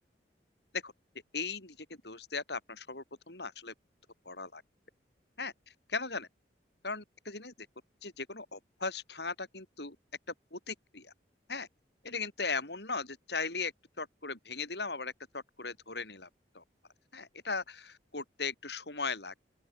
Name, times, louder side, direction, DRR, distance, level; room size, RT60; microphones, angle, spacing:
voice 1, 1.3-3.7 4.2-4.6 5.4-6.3 6.8-7.7 8.0-10.0 10.5-11.1 11.5-11.7 12.0-16.3 16.5-16.6 17.1-19.3, left 4 dB, 65° left, 6.4 m, -38 dB
open air
head